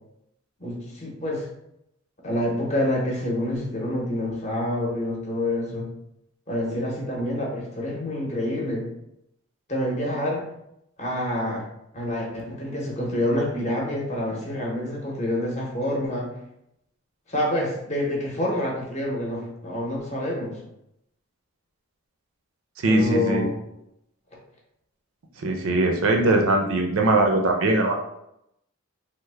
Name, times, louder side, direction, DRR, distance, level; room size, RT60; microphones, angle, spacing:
voice 1, 0.6-1.5 2.2-5.9 6.5-8.8 9.7-10.4 11.0-11.7 11.9-16.3 17.3-20.6 22.9-23.5, left 1 dB, 30° left, -2 dB, 0.7 m, -27 dB
voice 2, 22.8-23.5 25.4-27.9, right 2 dB, 70° right, 2 dB, 0.5 m, -21 dB
3.2 x 2.1 x 3.2 m, 0.81 s
head